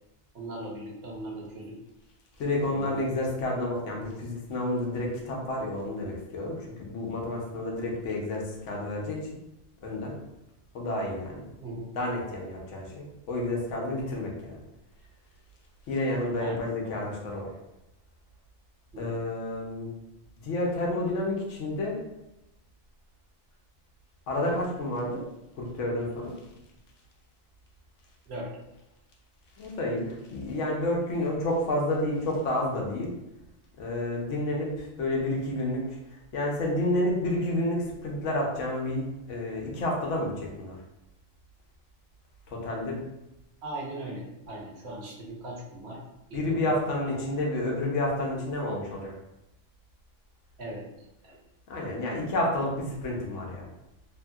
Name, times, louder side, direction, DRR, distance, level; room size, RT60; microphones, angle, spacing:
voice 1, 0.3-1.8 2.7-3.0 11.6-11.9 16.4-17.0 18.9-19.1 28.3-28.5 43.6-46.0 46.3-47.0 50.6-50.8 51.2-51.4, right 1 dB, 65° right, -3 dB, 0.9 m, -38 dB
voice 2, 2.4-9.3 9.8-10.1 10.7-11.4 11.9-14.6 15.9-17.5 19.0-19.9 20.4-22.0 24.3-25.2 25.6-26.4 29.6-33.1 33.8-40.8 42.5-43.0 46.3-49.1 51.7-53.7, left 1 dB, 80° left, -2 dB, 1.0 m, -30 dB
2.7 x 2.6 x 2.3 m, 0.91 s
omnidirectional pair, 1.2 m